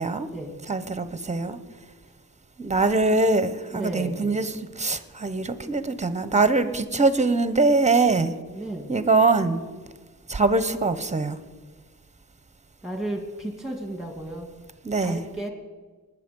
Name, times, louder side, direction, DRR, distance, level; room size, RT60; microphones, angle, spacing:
voice 1, 0.7-1.6 2.6-8.3 8.9-9.6 10.3-11.4 14.8-15.2, right 3 dB, 20° right, 12 dB, 0.8 m, -23 dB
voice 2, 3.7-4.3 8.5-8.9 12.8-14.5 15.0-15.5, right 1 dB, ahead, 3 dB, 2.2 m, -33 dB
19.5 x 7.2 x 5.4 m, 1.4 s
wide cardioid pair, 100°, 34 cm